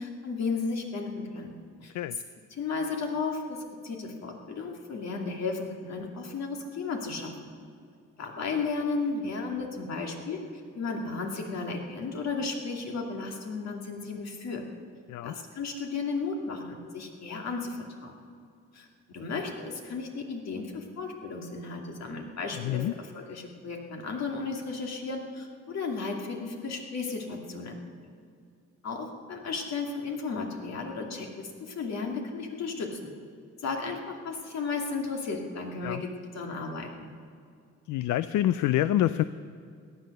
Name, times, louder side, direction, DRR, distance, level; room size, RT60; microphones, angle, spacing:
voice 1, 0.0-1.5 1.8-2.2 2.5-7.5 8.2-10.4 10.8-14.6 15.2-18.1 18.7-27.8 28.8-33.1 33.6-36.1 36.3-37.1, left 4 dB, 60° left, 1 dB, 2.4 m, -34 dB
voice 2, 22.6-22.9 35.8-36.0 37.9-39.2, left 13 dB, 75° left, 14 dB, 0.5 m, -26 dB
17.0 x 11.0 x 6.6 m, 2.3 s
cardioid pair, 90°, 30 cm